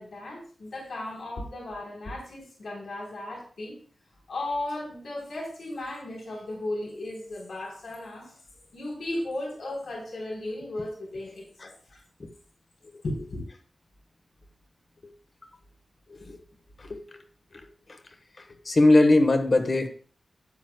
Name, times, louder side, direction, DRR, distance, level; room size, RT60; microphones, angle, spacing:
voice 1, 0.0-3.7 4.3-8.4 8.7-12.0 13.0-13.4, left 1 dB, 80° left, -3 dB, 3.8 m, -35 dB
voice 2, 16.1-16.4 16.8-17.2 17.5-17.6 17.9-18.0 18.4-19.9, left 2 dB, 45° left, 6 dB, 1.2 m, -21 dB
12.5 x 9.3 x 2.3 m, 0.43 s
wide cardioid pair, 140°, 0 cm